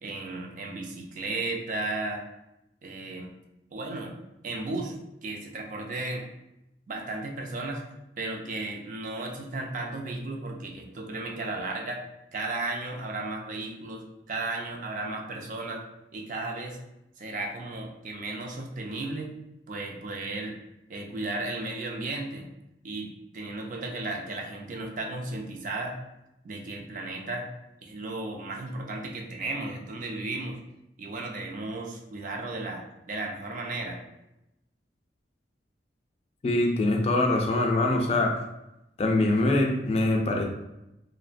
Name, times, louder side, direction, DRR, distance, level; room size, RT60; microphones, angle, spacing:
voice 1, 0.0-2.3 2.8-3.3 3.7-4.1 4.4-5.0 5.2-6.3 6.9-7.8 8.2-12.0 12.3-15.8 16.1-16.8 17.2-19.3 19.7-20.6 20.9-22.5 22.8-26.0 26.4-27.5 27.8-30.6 31.0-34.0, right 2 dB, 45° right, 1 dB, 0.4 m, -34 dB
voice 2, 36.4-38.4 39.0-40.4, left 2 dB, 35° left, 2 dB, 0.3 m, -23 dB
2.8 x 2.1 x 2.5 m, 0.90 s
head